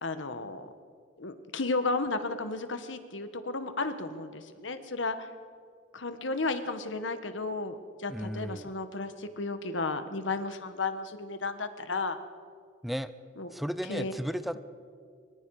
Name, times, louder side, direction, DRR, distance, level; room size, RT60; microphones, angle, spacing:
voice 1, 0.0-0.7 1.2-5.3 5.9-12.2 13.4-13.5 13.9-14.1, left 3 dB, 85° left, 10 dB, 1.4 m, -33 dB
voice 2, 8.1-8.7 12.8-13.1 13.5-14.6, equal, ahead, 12 dB, 0.6 m, -34 dB
24.5 x 24.5 x 4.9 m, 2.2 s
head